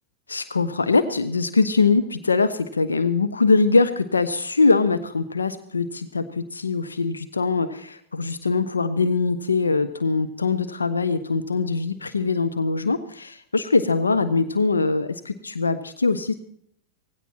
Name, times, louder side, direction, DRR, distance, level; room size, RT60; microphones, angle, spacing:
voice 1, 0.3-16.3, left 4 dB, 75° left, 12 dB, 0.7 m, -22 dB
18.0 x 16.0 x 4.4 m, 0.66 s
figure-of-eight pair, 90°, 0 cm